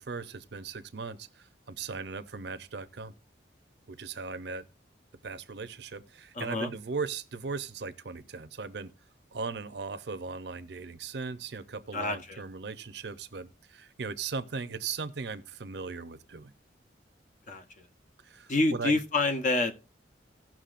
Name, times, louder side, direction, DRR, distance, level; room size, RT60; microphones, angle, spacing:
voice 1, 0.0-3.1 3.9-4.7 5.2-8.9 9.3-16.5 18.2-19.0, right 4 dB, 60° right, 0.6 m, -38 dB
voice 2, 6.3-6.7 11.9-12.4 17.5-17.6 18.5-19.8, left 2 dB, 40° left, 0.9 m, -28 dB
17.5 x 6.0 x 2.5 m
head